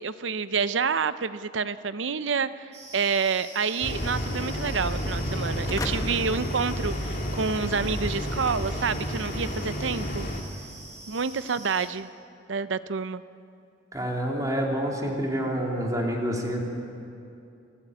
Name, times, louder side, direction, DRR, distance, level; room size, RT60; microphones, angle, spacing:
voice 1, 0.0-10.3 11.1-12.1 12.5-13.2, right 5 dB, 85° right, 14 dB, 0.7 m, -28 dB
sound 1, 2.7-11.9, right 2 dB, 40° right, 5.6 m, -45 dB
sound 2, 3.8-10.4, equal, 50° left, 2.3 m, -31 dB
sound 3, 5.7-7.6, left 1 dB, 20° left, 1.6 m, -38 dB
voice 2, 13.9-16.6, equal, 20° right, -1 dB, 3.3 m, -28 dB
27.0 x 15.5 x 8.2 m, 2.6 s
head